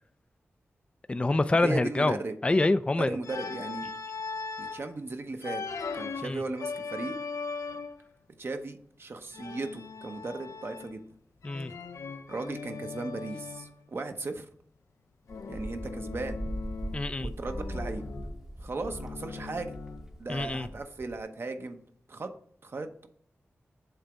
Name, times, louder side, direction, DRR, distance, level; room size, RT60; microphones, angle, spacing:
voice 1, 1.1-2.2 2.4-3.2 6.2-6.4 11.4-11.7 16.9-17.3 20.3-20.7, left 2 dB, 25° left, 12 dB, 0.4 m, -26 dB
voice 2, 1.6-2.3 3.0-3.9 4.6-5.6 5.9-7.2 8.4-11.0 12.3-14.5 15.5-16.4 17.2-18.0 18.6-19.8 20.2-21.8 22.1-22.3 22.6-23.1, right 3 dB, 55° right, 6 dB, 0.8 m, -36 dB
Organ, 3.2-4.9 5.4-8.1 9.3-11.1 11.4-13.7 15.3-17.1 17.4-20.1, left 4 dB, 80° left, 0.5 m, -39 dB
Wind, 15.3-21.2, equal, 10° right, 0.8 m, -39 dB
7.9 x 3.4 x 5.0 m, 0.63 s
cardioid pair, 55°, 5 cm